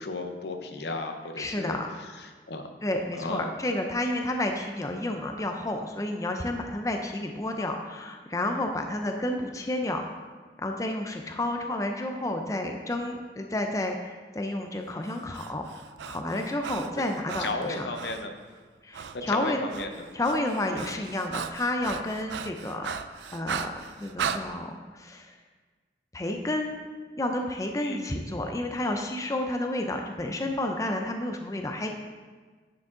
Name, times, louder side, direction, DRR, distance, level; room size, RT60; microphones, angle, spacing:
voice 1, 0.0-1.8 2.1-2.7 3.2-3.5 17.4-18.3 19.1-20.1 27.8-28.1, left 3 dB, 75° left, 6 dB, 0.7 m, -34 dB
voice 2, 1.4-1.9 2.8-10.1 10.6-15.7 16.1-17.9 18.8-19.6 20.1-22.9 23.3-25.4 26.1-26.8 27.1-31.9, left 1 dB, 20° left, 4 dB, 0.5 m, -30 dB
Breathing, 15.1-18.3 18.9-19.2 19.5-24.4, right 7 dB, 85° right, 0.4 m, -37 dB
10.0 x 5.0 x 3.7 m, 1.4 s
head